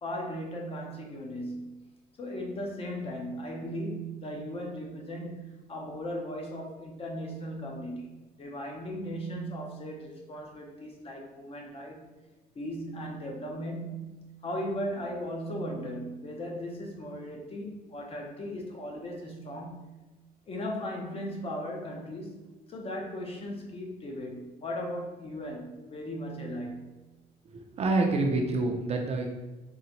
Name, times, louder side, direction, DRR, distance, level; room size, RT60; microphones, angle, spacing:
voice 1, 0.0-1.8 2.2-12.1 12.5-19.9 20.5-22.4 22.7-26.9, equal, 35° left, 1 dB, 0.6 m, -37 dB
voice 2, 27.4-29.3, right 2 dB, 40° right, 2 dB, 0.5 m, -27 dB
3.7 x 2.1 x 2.8 m, 1.1 s
cardioid pair, 110°, 17 cm